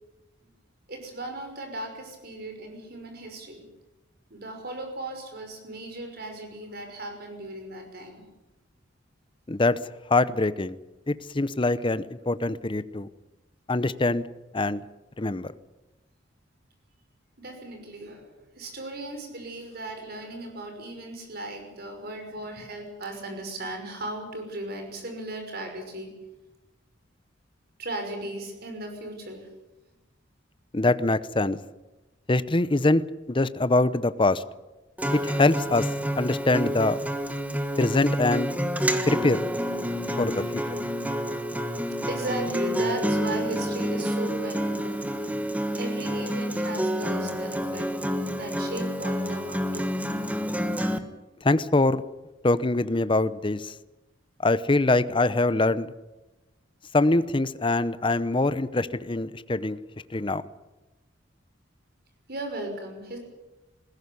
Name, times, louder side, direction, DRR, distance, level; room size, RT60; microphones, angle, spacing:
voice 1, 0.9-3.7 4.3-8.2 17.4-26.1 27.8-29.5 42.0-45.2 45.7-47.9 48.3-49.9 62.3-63.2, right 2 dB, 50° right, 4 dB, 5.9 m, -37 dB
voice 2, 9.5-9.8 10.1-10.7 11.1-13.1 13.7-14.2 14.5-14.8 15.2-15.5 30.7-31.6 32.3-34.4 35.1-35.9 36.2-37.0 37.8-38.5 39.1-39.4 40.2-40.6 51.4-52.0 52.4-53.7 54.4-55.9 56.9-59.8 60.1-60.4, left 2 dB, 25° left, 15 dB, 0.7 m, -23 dB
Acoustic guitar, 35.0-51.0, equal, 10° right, 1.4 m, -28 dB
20.5 x 16.0 x 9.7 m, 1.1 s
head